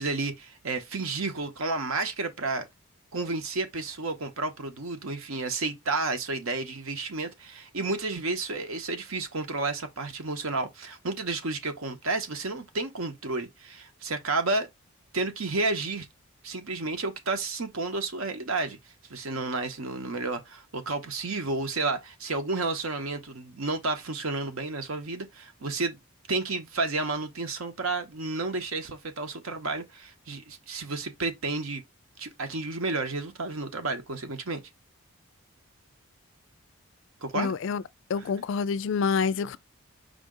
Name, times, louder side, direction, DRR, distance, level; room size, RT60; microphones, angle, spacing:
voice 1, 0.0-2.7 3.1-14.7 15.1-16.1 16.4-18.8 19.1-26.0 26.3-31.8 32.2-34.7 37.2-37.5, right 3 dB, 70° right, 0.9 m, -31 dB
voice 2, 37.3-37.8 38.1-39.6, left 5 dB, 60° left, 0.3 m, -27 dB
5.1 x 2.7 x 3.7 m
head